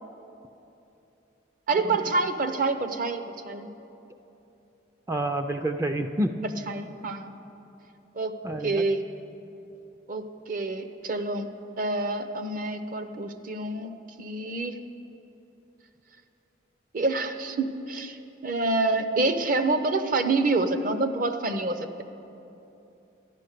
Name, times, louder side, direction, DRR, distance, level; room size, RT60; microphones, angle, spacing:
voice 1, 1.7-3.7 6.7-7.3 8.1-9.0 10.1-11.5 11.8-14.8 16.9-22.0, right 3 dB, 45° right, 8 dB, 0.7 m, -27 dB
voice 2, 5.1-6.4 8.4-8.8, right 1 dB, 15° right, 5 dB, 0.3 m, -28 dB
13.0 x 10.5 x 6.6 m, 2.9 s
head